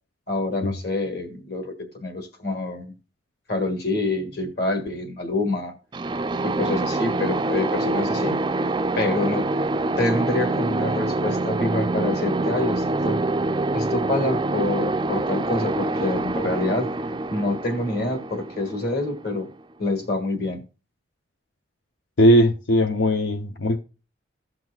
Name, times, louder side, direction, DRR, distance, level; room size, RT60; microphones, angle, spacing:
voice 1, 0.3-2.9 3.5-5.7 6.4-8.4 9.0-9.5 10.0-13.2 13.7-16.9 17.3-19.5 19.8-20.6, left 2 dB, 55° left, 1.8 m, -26 dB
sound 1, 5.9-19.6, right 2 dB, 25° right, 0.4 m, -25 dB
voice 2, 22.2-23.8, equal, 80° left, 0.7 m, -18 dB
16.5 x 6.0 x 2.3 m
head